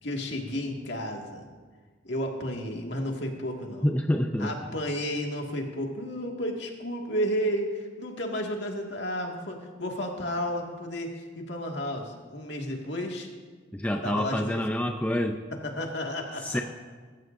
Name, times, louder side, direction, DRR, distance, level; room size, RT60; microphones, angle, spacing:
voice 1, 0.0-1.5 2.0-3.9 4.4-13.3 14.0-14.6 15.5-16.6, equal, 60° left, 1 dB, 1.9 m, -32 dB
voice 2, 3.8-4.5 13.7-15.4 16.4-16.6, left 1 dB, 10° left, 3 dB, 0.5 m, -27 dB
23.5 x 14.0 x 2.6 m, 1.5 s
head